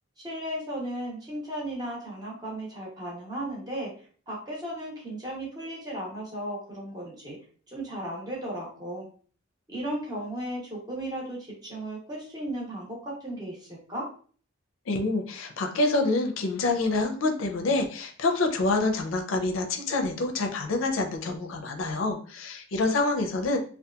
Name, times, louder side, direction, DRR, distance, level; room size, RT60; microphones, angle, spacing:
voice 1, 0.2-3.9 4.3-7.4 7.7-9.1 9.7-14.1, right 1 dB, 20° right, -4 dB, 0.8 m, -35 dB
voice 2, 14.9-23.6, left 2 dB, 75° left, 4 dB, 0.4 m, -27 dB
2.7 x 2.3 x 2.3 m, 0.44 s
head